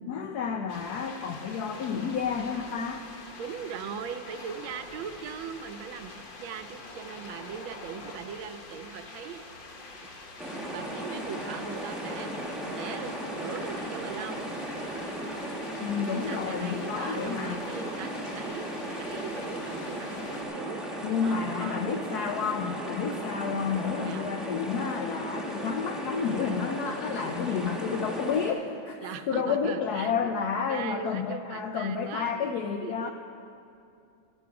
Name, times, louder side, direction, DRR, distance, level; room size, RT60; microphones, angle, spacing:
voice 1, 0.1-3.0 15.8-17.6 21.0-33.1, left 6 dB, 80° left, 5 dB, 0.8 m, -30 dB
sound 1, 0.7-20.4, left 3 dB, 50° left, 0.6 m, -45 dB
voice 2, 3.4-9.5 10.6-12.3 12.8-14.4 16.0-18.7 19.0-20.8 21.2-22.0 23.9-24.3 29.0-30.3 30.7-32.5 32.8-33.1, right 7 dB, 80° right, 10 dB, 1.3 m, -40 dB
sound 2, 10.4-28.5, right 1 dB, ahead, 0.7 m, -36 dB
12.0 x 12.0 x 4.7 m, 2.6 s
omnidirectional pair, 2.2 m